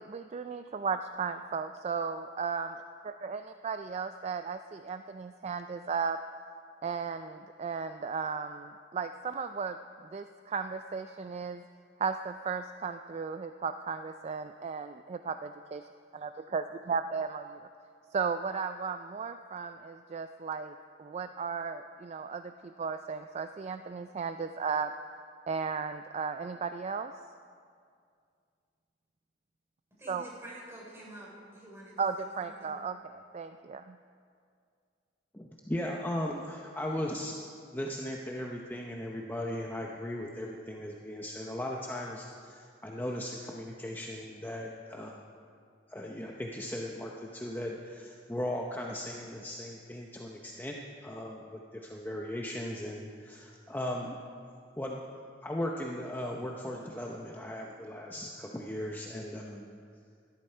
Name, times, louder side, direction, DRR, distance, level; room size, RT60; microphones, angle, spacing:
voice 1, 0.0-2.8 3.0-6.2 6.8-9.8 10.1-11.6 12.0-15.8 16.1-17.6 18.1-24.9 25.5-27.1 30.1-30.3 32.0-34.0, right 5 dB, 35° right, 9 dB, 0.3 m, -35 dB
voice 2, 30.0-32.8, right 1 dB, 15° right, -5 dB, 4.3 m, -48 dB
voice 3, 35.3-37.4 37.7-45.2 45.9-54.2 54.8-55.0 55.4-59.7, left 1 dB, 10° left, -1 dB, 0.7 m, -37 dB
17.5 x 12.5 x 4.5 m, 2.3 s
head